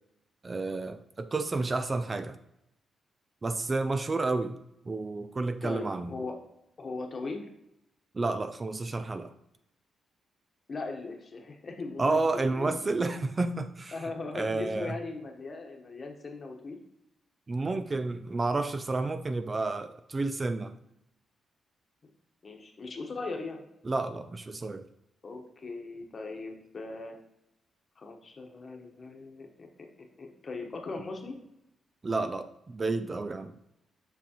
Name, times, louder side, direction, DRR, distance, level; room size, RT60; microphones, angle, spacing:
voice 1, 0.4-2.4 3.4-4.6 4.9-6.2 8.1-9.3 12.0-14.0 14.3-14.9 17.5-20.8 23.8-24.9 32.0-33.6, right 3 dB, 25° right, 10 dB, 0.3 m, -30 dB
voice 2, 5.6-6.3 6.8-7.5 10.7-12.8 13.9-16.8 22.4-23.7 25.2-27.2 28.0-29.9 30.2-31.4, left 3 dB, 35° left, 3 dB, 1.1 m, -39 dB
7.2 x 5.7 x 2.9 m, 0.84 s
cardioid pair, 130°, 0 cm